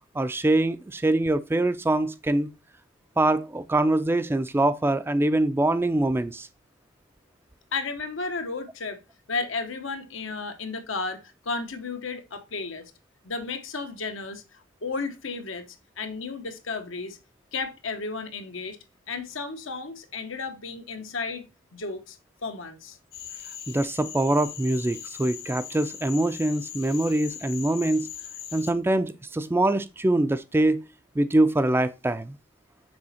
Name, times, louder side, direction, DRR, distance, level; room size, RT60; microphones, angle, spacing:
voice 1, 0.1-2.5 3.2-6.5 23.7-28.1 28.5-30.8 31.2-32.4, right 1 dB, 10° right, 0.3 m, -24 dB
voice 2, 7.7-9.0 9.3-11.2 11.4-12.9 13.2-15.6 16.0-17.2 17.5-18.8 19.1-21.4 21.7-22.2 22.4-23.0, left 4 dB, 85° left, 1.1 m, -33 dB
Cricket / Frog, 23.1-28.7, left 9 dB, 50° left, 1.1 m, -40 dB
6.2 x 4.1 x 4.2 m
head